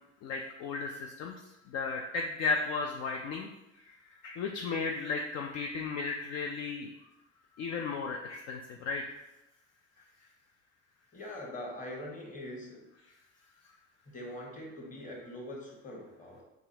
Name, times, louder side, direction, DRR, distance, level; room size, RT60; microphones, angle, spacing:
voice 1, 0.2-1.4 1.7-3.5 3.9-6.9 7.6-9.2, left 4 dB, 55° left, 2 dB, 0.4 m, -35 dB
voice 2, 11.1-12.9 14.1-16.4, left 1 dB, 25° left, -1 dB, 1.1 m, -43 dB
3.8 x 2.3 x 2.7 m, 0.90 s
hypercardioid pair, 65°, 34 cm